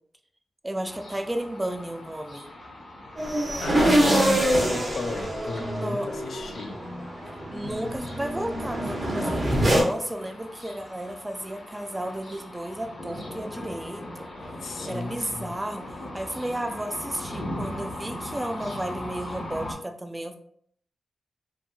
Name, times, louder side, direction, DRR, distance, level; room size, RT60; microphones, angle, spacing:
voice 1, 0.6-2.5 5.6-6.1 7.5-14.3 14.6-20.4, right 1 dB, 15° right, 6 dB, 0.3 m, -33 dB
sound 1, 0.8-19.7, left 1 dB, 55° left, 0.9 m, -40 dB
sound 2, 3.2-9.8, right 1 dB, 35° right, 0.7 m, -25 dB
voice 2, 3.6-6.8 7.6-7.9 14.6-15.5, left 3 dB, 75° left, 5 dB, 0.4 m, -34 dB
2.7 x 2.7 x 2.2 m, 0.63 s
wide cardioid pair, 90°, 0 cm